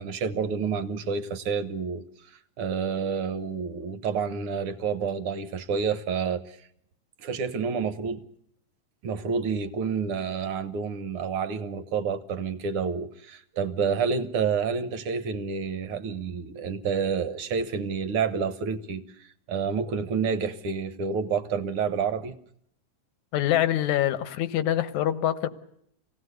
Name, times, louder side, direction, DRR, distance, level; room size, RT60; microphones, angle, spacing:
voice 1, 0.0-6.6 7.2-8.2 9.0-22.4, right 6 dB, 60° right, 12 dB, 1.8 m, -29 dB
voice 2, 23.3-25.5, left 12 dB, 85° left, 14 dB, 2.5 m, -25 dB
26.0 x 17.5 x 8.1 m, 0.73 s
omnidirectional pair, 3.3 m